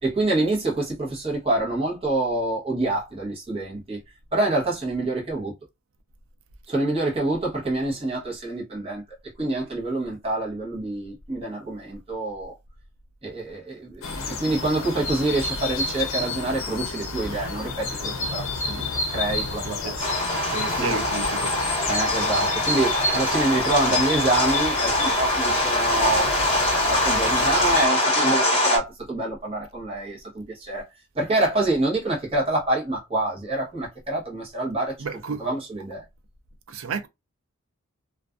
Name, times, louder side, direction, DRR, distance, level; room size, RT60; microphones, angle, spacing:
voice 1, 0.0-4.0 4.3-5.5 6.7-9.0 9.4-12.5 13.2-20.2 20.8-21.0 21.9-30.8 31.1-34.9 35.4-36.0, right 2 dB, 25° right, 0.8 m, -26 dB
sound 1, 14.0-27.9, left 3 dB, 65° left, 0.6 m, -30 dB
voice 2, 19.6-20.0 20.5-21.5 35.0-35.5 36.7-37.1, right 5 dB, 60° right, 0.4 m, -32 dB
sound 2, 20.0-28.8, left 1 dB, 25° left, 1.0 m, -23 dB
2.4 x 2.3 x 2.3 m
head